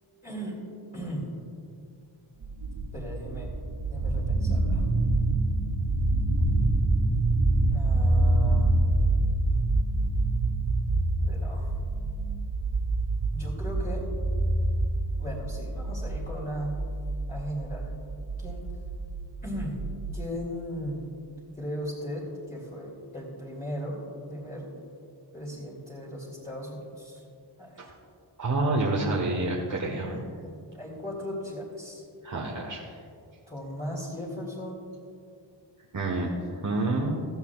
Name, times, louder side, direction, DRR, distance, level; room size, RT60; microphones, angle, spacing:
voice 1, 0.2-0.6 0.9-1.3 2.9-3.5 3.9-4.8 7.7-8.7 11.2-11.7 13.3-14.0 15.2-16.7 17.3-18.0 18.4-18.7 19.4-19.8 20.1-21.0 21.6-24.0 24.3-24.7 25.3-27.2 27.6-27.9 30.4-32.0 33.5-34.9, equal, 15° left, -7 dB, 2.5 m, -37 dB
sound 1, 2.4-20.3, right 2 dB, 75° right, 2.7 m, -26 dB
voice 2, 28.4-30.3 32.2-32.8 35.9-36.4 36.6-37.2, right 2 dB, 40° right, -2 dB, 1.2 m, -28 dB
16.5 x 14.5 x 2.3 m, 2.3 s
wide cardioid pair, 125°, 47 cm